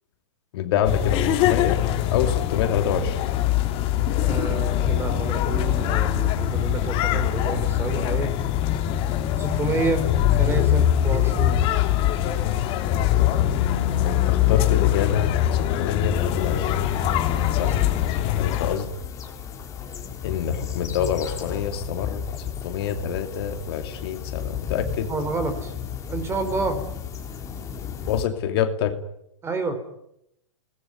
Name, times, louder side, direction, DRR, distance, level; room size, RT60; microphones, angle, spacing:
voice 1, 0.5-1.8 2.1-3.3 14.0-16.9 17.5-17.8 18.4-18.9 20.2-22.2 22.6-25.1 28.1-29.0, left 8 dB, 50° left, 7 dB, 2.8 m, -27 dB
sound 1, 0.8-18.7, left 11 dB, 35° left, 2.9 m, -22 dB
voice 2, 4.2-8.3 9.4-10.0 10.4-11.6 17.6-17.8 25.1-25.7 26.1-26.8 29.4-29.8, right 3 dB, 15° right, 10 dB, 4.4 m, -29 dB
sound 2, 16.1-28.3, left 8 dB, 20° left, 3.7 m, -34 dB
28.5 x 20.0 x 9.6 m, 0.81 s
hypercardioid pair, 135°, 16 cm